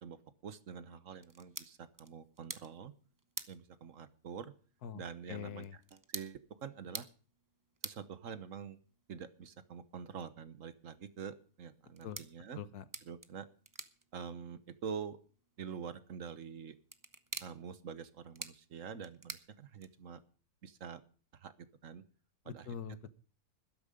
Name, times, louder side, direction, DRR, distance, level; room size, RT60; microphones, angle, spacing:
voice 1, 0.0-2.9 3.5-4.5 4.9-7.1 7.8-8.8 9.1-12.6 13.0-13.5 14.1-15.2 15.6-16.8 17.4-20.2 20.6-21.0 21.3-21.5 21.8-22.0 22.4-22.8, right 7 dB, 60° right, 14 dB, 1.3 m, -46 dB
sound 1, 1.2-20.2, right 3 dB, 20° right, 0.6 m, -51 dB
voice 2, 5.3-5.7 12.0-12.2 12.5-12.8 22.5-23.2, left 8 dB, 85° left, 15 dB, 1.6 m, -43 dB
14.0 x 12.0 x 5.1 m, 0.40 s
omnidirectional pair, 1.6 m